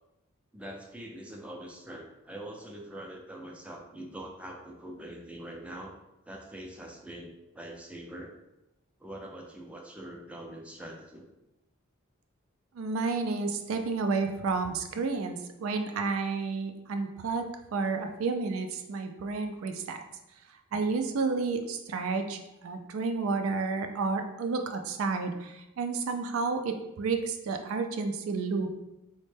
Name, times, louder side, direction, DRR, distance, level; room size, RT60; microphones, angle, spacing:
voice 1, 0.5-6.0 6.3-8.3 9.0-11.3, right 1 dB, 5° right, 1 dB, 0.4 m, -43 dB
voice 2, 12.7-17.4 17.7-20.0 20.7-28.7, right 4 dB, 75° right, 6 dB, 0.3 m, -31 dB
4.1 x 2.1 x 3.2 m, 0.92 s
head